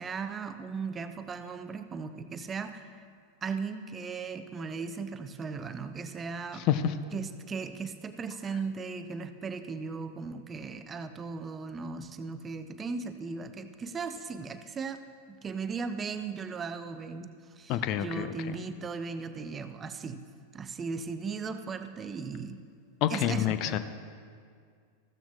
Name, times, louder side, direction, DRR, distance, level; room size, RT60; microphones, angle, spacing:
voice 1, 0.0-3.0 3.4-6.7 7.1-20.2 20.5-22.6 23.1-23.8, right 5 dB, 20° right, 10 dB, 0.6 m, -37 dB
voice 2, 17.7-18.3 23.0-23.8, left 10 dB, 40° left, 12 dB, 0.5 m, -27 dB
14.5 x 13.0 x 2.4 m, 2.1 s
figure-of-eight pair, 90°, 0 cm